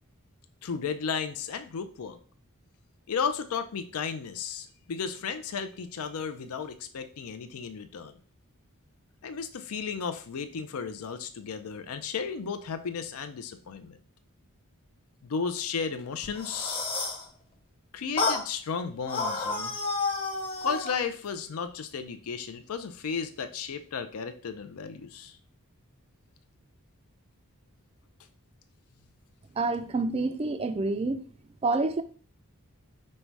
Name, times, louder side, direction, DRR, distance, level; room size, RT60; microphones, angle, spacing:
voice 1, 0.6-2.2 3.1-8.1 9.2-14.0 15.2-16.8 17.9-19.7 20.6-25.4, left 6 dB, 75° left, 0.5 m, -34 dB
sound 1, 16.2-17.2 18.2-18.4 19.1-21.0, left 3 dB, 25° left, 0.8 m, -30 dB
voice 2, 29.6-31.3 31.6-32.0, right 3 dB, 25° right, 0.3 m, -28 dB
5.4 x 2.1 x 4.5 m
head